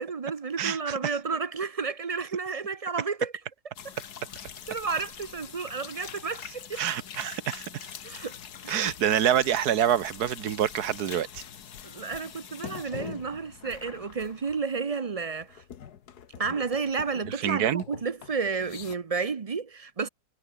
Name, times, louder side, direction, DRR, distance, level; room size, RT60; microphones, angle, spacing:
voice 1, 0.0-3.3 3.8-3.9 4.7-6.8 8.0-8.4 8.6-8.9 11.8-15.6 16.4-20.1, right 5 dB, 40° right, 0.5 m, -31 dB
voice 2, 0.6-1.1 6.7-7.9 8.7-11.4 17.3-17.8, right 10 dB, 90° right, 1.6 m, -27 dB
sound 1, 3.8-15.1 15.4-17.5 17.8-19.0, left 8 dB, 90° left, 1.8 m, -44 dB
omnidirectional pair, 1.6 m